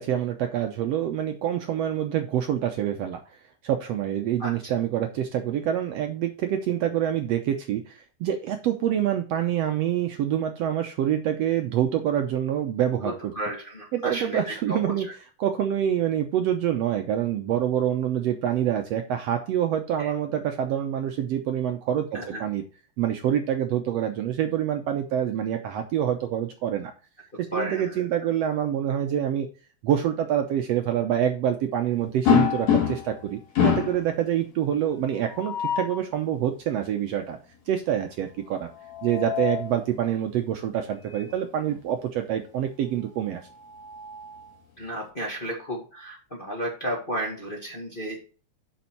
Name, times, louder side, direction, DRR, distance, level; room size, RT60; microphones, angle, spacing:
voice 1, 0.0-3.2 3.6-13.3 13.9-15.1 15.4-22.6 23.0-26.9 27.5-29.5 29.8-37.4 37.7-38.7 39.0-43.4, right 10 dB, 70° right, 5 dB, 1.7 m, -26 dB
voice 2, 4.4-4.8 13.0-14.8 20.0-20.1 22.1-22.4 27.5-28.0 44.8-48.2, right 1 dB, 25° left, -1 dB, 1.4 m, -33 dB
sound 1, 32.3-33.2 33.6-34.0 35.3-36.0 38.7-39.7 41.1-41.3 41.7-41.8 43.3-44.6, left 8 dB, 60° left, 3.4 m, -25 dB
7.0 x 6.3 x 4.5 m, 0.36 s
omnidirectional pair, 3.5 m